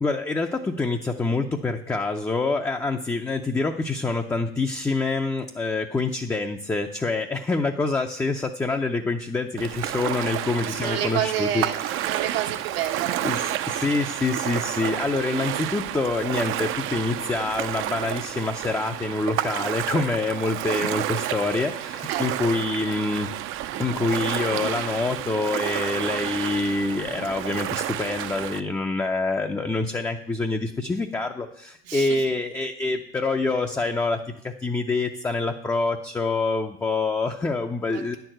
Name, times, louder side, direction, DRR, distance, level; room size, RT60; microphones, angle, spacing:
voice 1, 0.0-11.9 13.2-23.3 23.8-38.2, left 3 dB, 10° left, 3 dB, 0.5 m, -26 dB
Ocean, 9.6-28.6, right 12 dB, 45° right, 0.5 m, -30 dB
voice 2, 10.8-11.8 12.1-14.1 22.1-22.5 31.8-32.2 37.9-38.2, right 10 dB, 85° right, 2 dB, 1.4 m, -30 dB
9.7 x 4.6 x 7.6 m, 0.73 s
supercardioid pair, 100°, 29 cm